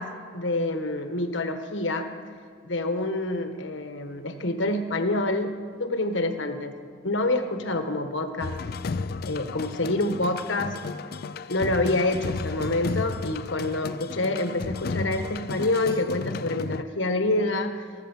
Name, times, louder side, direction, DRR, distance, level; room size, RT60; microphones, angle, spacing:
voice 1, 0.0-2.1 2.6-6.8 7.0-8.5 9.3-10.8 11.5-17.8, left 2 dB, 75° left, 7 dB, 1.3 m, -27 dB
sound 1, 8.4-16.8, left 4 dB, 50° left, 0.4 m, -33 dB
14.0 x 12.0 x 7.1 m, 2.1 s
head